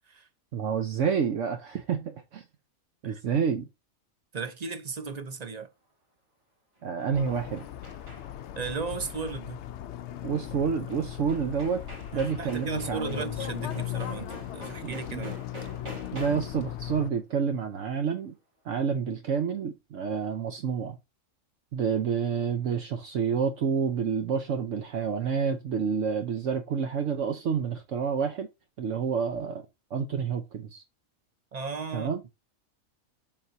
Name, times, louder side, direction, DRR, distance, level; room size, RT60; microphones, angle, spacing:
voice 1, 0.5-2.4 3.0-3.7 6.8-7.7 10.2-11.8 12.1-13.2 14.8-15.3 16.1-18.4 18.6-21.0 21.7-28.5 28.8-29.7 29.9-30.8 31.9-32.2, right 6 dB, 65° right, 1.1 m, -29 dB
voice 2, 4.3-5.7 8.6-9.6 12.1-15.4 31.5-32.1, right 5 dB, 35° right, 0.8 m, -36 dB
sound 1, 6.8-8.5 10.9-11.0 11.3-16.6, right 1 dB, 80° right, 4.5 m, -46 dB
sound 2, 7.1-17.1, left 11 dB, 65° left, 0.8 m, -38 dB
7.4 x 6.1 x 2.7 m
omnidirectional pair, 1.4 m